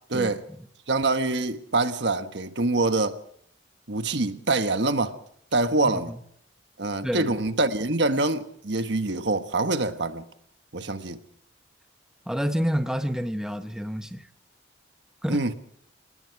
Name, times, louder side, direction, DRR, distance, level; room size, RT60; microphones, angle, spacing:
voice 1, 0.9-3.2 3.9-5.2 5.5-6.1 6.8-10.3 10.7-11.2 15.3-15.5, right 2 dB, 65° right, 1.4 m, -25 dB
voice 2, 5.8-6.2 7.0-7.3 12.3-14.3 15.2-15.4, equal, 5° right, 0.9 m, -28 dB
29.0 x 19.0 x 4.8 m
head